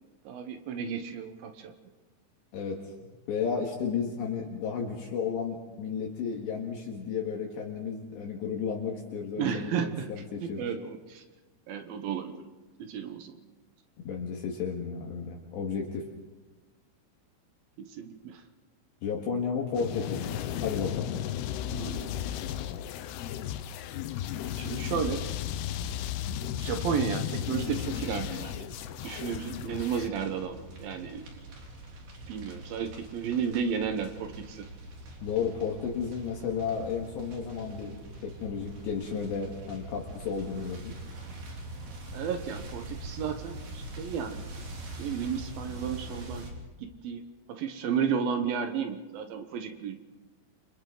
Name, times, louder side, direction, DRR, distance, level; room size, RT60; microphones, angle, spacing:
voice 1, 0.3-1.7 9.4-10.1 10.4-11.2 11.7-12.5 12.8-13.4 17.8-18.4 21.7-22.2 24.6-25.2 26.6-28.7 29.0-31.3 32.3-34.7 42.1-44.5 45.0-46.5 46.8-47.2 47.5-50.0, right 7 dB, 75° right, 6 dB, 2.2 m, -33 dB
voice 2, 2.5-10.7 14.0-16.0 19.0-21.2 35.2-40.9, left 6 dB, 65° left, 0 dB, 3.7 m, -33 dB
sound 1, 19.7-30.1, left 10 dB, 85° left, 2.3 m, -34 dB
sound 2, 28.5-46.5, right 1 dB, 45° right, 4.2 m, -43 dB
29.0 x 27.5 x 3.9 m, 1.2 s
omnidirectional pair, 5.7 m